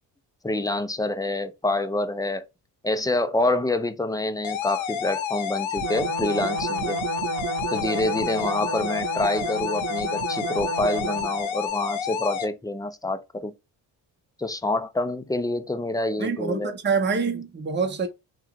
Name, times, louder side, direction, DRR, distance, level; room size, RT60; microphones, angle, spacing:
voice 1, 0.4-2.4 2.8-7.0 7.7-13.5 14.4-16.7, left 2 dB, 10° left, 0.5 m, -27 dB
sound 1, 4.4-12.5, left 8 dB, 75° left, 0.8 m, -29 dB
sound 2, 5.8-11.5, right 7 dB, 75° right, 0.8 m, -32 dB
voice 2, 16.2-18.1, right 5 dB, 25° right, 0.8 m, -26 dB
3.4 x 2.4 x 3.1 m
supercardioid pair, 55°, 47 cm